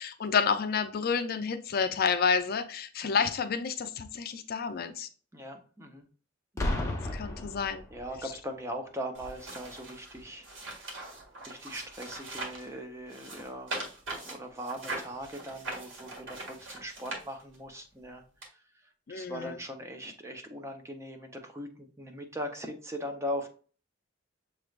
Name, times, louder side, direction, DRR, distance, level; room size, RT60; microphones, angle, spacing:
voice 1, 0.0-5.1 7.1-7.8 8.2-8.3 19.1-19.6, left 6 dB, 50° left, 10 dB, 0.4 m, -29 dB
voice 2, 5.3-6.1 6.5-6.8 7.9-10.4 11.5-13.7 14.2-18.2 19.1-23.5, equal, 15° right, 4 dB, 0.7 m, -40 dB
Boom, 6.6-8.3 9.2-9.5, left 1 dB, 15° left, 1.1 m, -33 dB
sound 1, 9.1-12.7 13.1-17.7 18.4-18.5, right 2 dB, 85° right, 1.8 m, -41 dB
6.7 x 3.2 x 2.4 m, 0.40 s
head